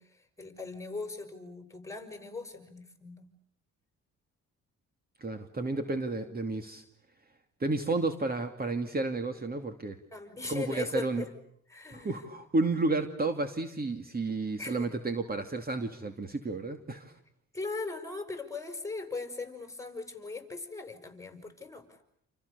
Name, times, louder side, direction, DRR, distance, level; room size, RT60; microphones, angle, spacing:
voice 1, 0.0-3.3 10.1-11.3 11.7-12.3 14.6-14.9 17.5-22.0, left 3 dB, 10° left, 7 dB, 6.2 m, -39 dB
voice 2, 5.2-6.8 7.6-10.0 10.5-11.2 11.9-17.2, right 3 dB, 30° right, 7 dB, 2.6 m, -31 dB
29.0 x 29.0 x 6.9 m, 0.67 s
cardioid pair, 90°, 30 cm